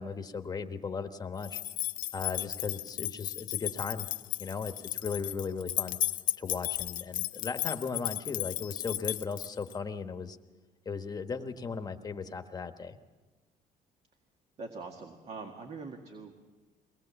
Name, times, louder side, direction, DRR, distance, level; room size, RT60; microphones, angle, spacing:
voice 1, 0.0-1.6 2.1-4.1 4.4-6.0 6.4-10.4 10.8-13.0, left 5 dB, 25° left, 7 dB, 1.2 m, -37 dB
sound 1, 1.4-9.7, left 14 dB, 65° left, 0.6 m, -34 dB
voice 2, 14.6-16.3, right 4 dB, 45° right, 3 dB, 1.9 m, -43 dB
22.5 x 19.0 x 7.1 m, 1.3 s
cardioid pair, 125°, 15 cm